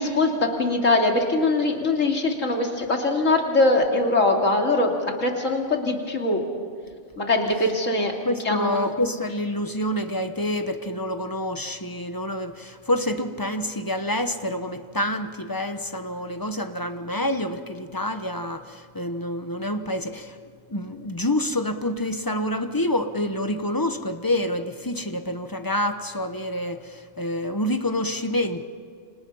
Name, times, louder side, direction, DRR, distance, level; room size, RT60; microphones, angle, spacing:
voice 1, 0.0-4.9 5.2-6.4 7.2-8.1 8.4-8.9, left 2 dB, 75° left, 1 dB, 3.1 m, -22 dB
voice 2, 8.2-20.4 20.7-28.7, left 1 dB, 20° left, 8 dB, 1.0 m, -27 dB
29.5 x 27.0 x 5.6 m, 2.3 s
omnidirectional pair, 1.3 m